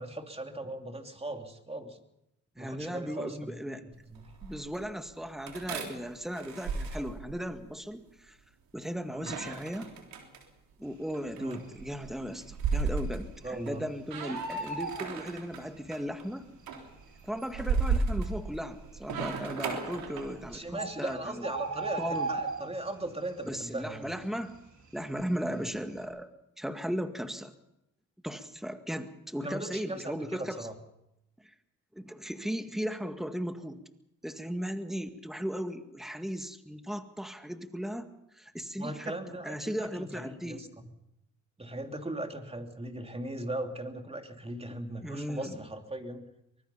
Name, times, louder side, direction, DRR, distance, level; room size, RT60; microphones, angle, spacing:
voice 1, 0.0-2.0 2.6-3.6 3.8-4.3 9.1-9.3 11.4-11.6 13.4-13.8 20.4-24.2 25.5-25.7 29.4-30.8 38.8-40.7 41.6-46.3, right 1 dB, 15° right, 4 dB, 3.1 m, -39 dB
voice 2, 2.6-3.8 4.4-8.4 8.7-9.9 10.8-16.5 17.2-21.4 22.0-22.3 23.5-24.5 24.9-26.3 26.6-27.5 28.2-30.6 31.4-31.5 31.9-33.8 34.2-38.1 38.3-39.2 39.4-40.7 45.0-45.5, equal, ahead, 7 dB, 2.0 m, -36 dB
sound 1, 3.9-4.9 5.5-7.7 9.2-10.4 11.1-13.8 14.1-15.6 15.9-16.3 16.7-20.6, right 4 dB, 85° right, 3.8 m, -34 dB
Bird, 11.4-12.0 12.3-12.4 12.6-13.8 14.1-15.9 16.8-16.9 17.5-17.6 17.8-17.9 18.6-19.0 20.0-20.1 20.4-20.5 20.8-23.1 23.4-23.7 24.0-25.4 25.7-26.0, right 3 dB, 55° right, 3.8 m, -36 dB
24.0 x 20.5 x 5.7 m, 0.83 s
cardioid pair, 70°, 35 cm